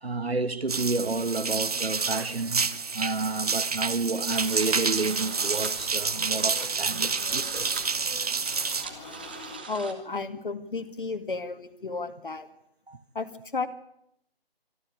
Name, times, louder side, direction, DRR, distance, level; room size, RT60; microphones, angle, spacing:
voice 1, 0.0-7.8 12.9-13.0, right 3 dB, 85° right, 1.7 m, -30 dB
sound 1, 0.7-8.8, right 5 dB, 40° right, 0.9 m, -29 dB
sound 2, 4.2-9.9, right 5 dB, 10° right, 0.8 m, -41 dB
sound 3, 4.3-9.6, left 3 dB, 10° left, 1.7 m, -46 dB
voice 2, 9.7-12.5 13.1-13.7, left 3 dB, 55° left, 2.2 m, -33 dB
25.0 x 13.0 x 8.8 m
figure-of-eight pair, 160°, 30 cm